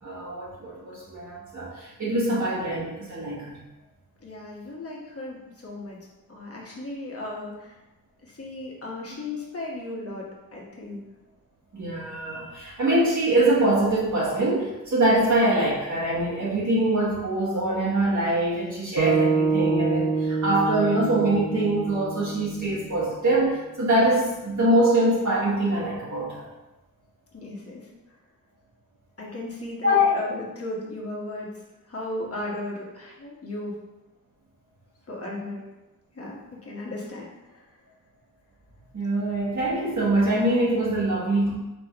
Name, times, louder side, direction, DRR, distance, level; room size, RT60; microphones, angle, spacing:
voice 1, 0.0-3.6 11.7-26.5 29.8-30.2 38.9-41.5, right 1 dB, 50° right, -7 dB, 1.3 m, -23 dB
voice 2, 4.2-7.7 8.2-11.0 15.2-15.3 27.3-27.9 29.2-31.5 31.9-33.7 35.1-35.6 36.1-37.6, left 2 dB, 40° left, -3 dB, 1.3 m, -36 dB
sound 1, 19.0-23.2, right 5 dB, 75° right, 1.2 m, -26 dB
4.6 x 3.8 x 3.0 m, 1.0 s
cardioid pair, 80°, 36 cm